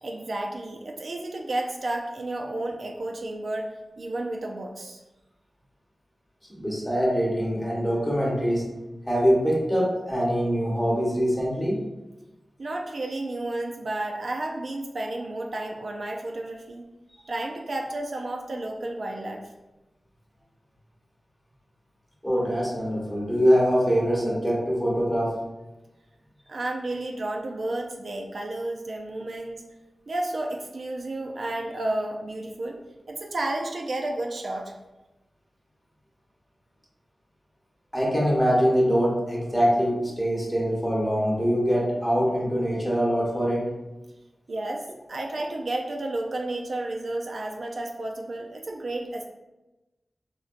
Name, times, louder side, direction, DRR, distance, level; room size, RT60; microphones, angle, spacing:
voice 1, 0.0-5.0 12.6-16.8 17.3-19.5 26.5-29.7 30.1-32.8 33.1-34.7 44.5-49.3, right 2 dB, 65° right, 2 dB, 0.3 m, -32 dB
voice 2, 6.5-8.6 9.1-11.8 22.2-25.4 37.9-43.7, equal, 10° left, -5 dB, 0.9 m, -23 dB
3.8 x 2.2 x 2.4 m, 1.0 s
wide cardioid pair, 110°, 0 cm